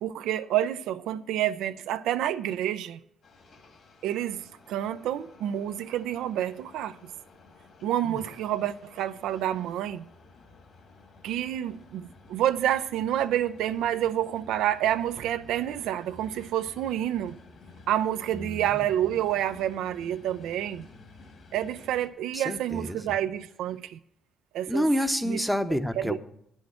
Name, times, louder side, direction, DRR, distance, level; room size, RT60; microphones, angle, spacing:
voice 1, 0.0-3.0 4.0-7.1 7.8-10.0 11.2-17.4 17.9-20.9 21.5-24.0 24.5-24.9 25.3-25.4 26.0-26.2, right 11 dB, 90° right, 0.4 m, -28 dB
sound 1, 3.2-22.1, left 3 dB, 55° left, 2.4 m, -52 dB
voice 2, 18.3-18.9 22.3-23.1 24.7-26.2, equal, ahead, 0.8 m, -29 dB
9.4 x 6.3 x 7.6 m
cardioid pair, 90°, 0 cm